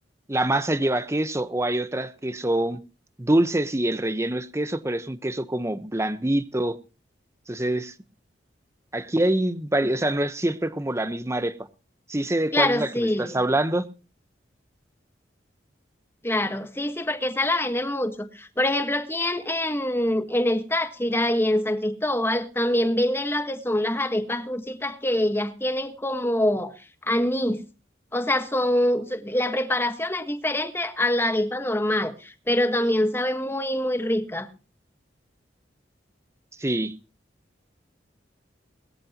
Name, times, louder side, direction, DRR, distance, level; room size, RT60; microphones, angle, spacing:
voice 1, 0.3-2.8 3.2-6.8 7.5-7.9 8.9-11.6 12.1-13.8 36.6-36.9, right 1 dB, 15° right, 1.0 m, -25 dB
voice 2, 12.5-13.4 16.2-26.7 27.0-27.6 28.1-34.5, left 1 dB, 15° left, 1.4 m, -25 dB
20.5 x 14.0 x 2.9 m
head